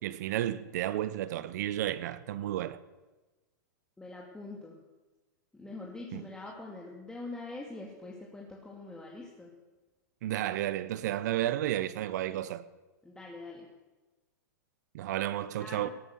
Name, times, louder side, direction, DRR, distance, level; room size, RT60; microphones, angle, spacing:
voice 1, 0.0-2.8 6.1-6.2 10.2-12.6 14.9-15.9, right 13 dB, 65° right, 0.9 m, -32 dB
voice 2, 4.0-4.8 5.5-9.5 13.0-13.7 15.6-15.9, left 2 dB, 5° left, 2.3 m, -44 dB
18.5 x 9.1 x 6.5 m
hypercardioid pair, 120°, 10 cm